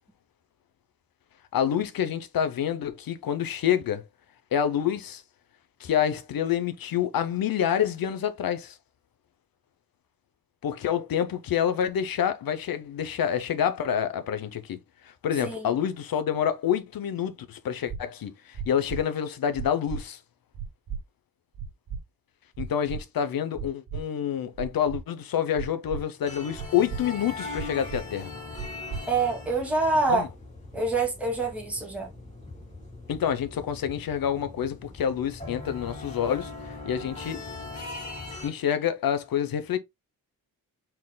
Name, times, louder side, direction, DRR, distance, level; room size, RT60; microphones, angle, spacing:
voice 1, 1.5-4.0 4.5-5.2 5.8-8.7 10.6-14.8 15.2-20.2 22.6-28.3 30.1-30.3 33.1-36.5 36.8-37.4 38.4-39.8, left 9 dB, 65° left, 0.8 m, -27 dB
voice 2, 15.4-15.7 29.1-30.3 30.7-32.1, right 3 dB, 5° right, 1.6 m, -26 dB
sound 1, 17.9-18.0 18.5-19.0 19.5-20.0 20.5-21.0 21.5-22.0 22.5-23.0 23.5-24.0 24.5-25.0 25.5-26.0 26.5-27.0 27.5-28.0 28.5-29.0, right 7 dB, 75° right, 1.4 m, -34 dB
sound 2, 26.3-38.5, left 3 dB, 20° left, 2.0 m, -40 dB
4.5 x 3.8 x 2.3 m
wide cardioid pair, 175°, 37 cm